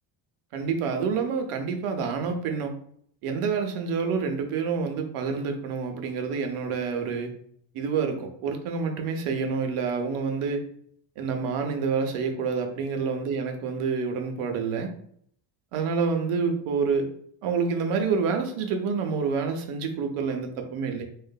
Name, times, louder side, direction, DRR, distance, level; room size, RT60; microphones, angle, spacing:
voice 1, 0.5-2.7 3.2-7.3 7.7-10.6 11.2-14.9 15.7-17.1 17.4-21.0, right 5 dB, 85° right, 5 dB, 0.7 m, -28 dB
2.7 x 2.4 x 2.2 m, 0.64 s
cardioid pair, 120°, 50 cm